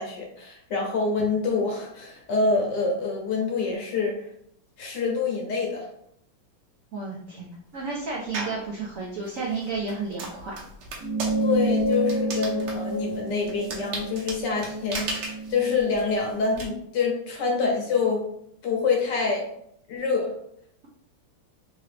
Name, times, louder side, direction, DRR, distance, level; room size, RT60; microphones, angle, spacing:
voice 1, 0.0-4.3 4.8-5.9 11.4-18.2 18.6-19.5 19.9-20.3, left 4 dB, 65° left, 0 dB, 1.2 m, -26 dB
voice 2, 6.9-7.5 7.7-10.6, right 4 dB, 90° right, -3 dB, 0.7 m, -32 dB
sound 1, 8.3-8.7 9.2-16.6, right 3 dB, 65° right, 1.3 m, -36 dB
sound 2, 11.0-15.8, right 1 dB, 45° right, 1.0 m, -28 dB
3.6 x 2.9 x 3.3 m, 0.71 s
omnidirectional pair, 2.3 m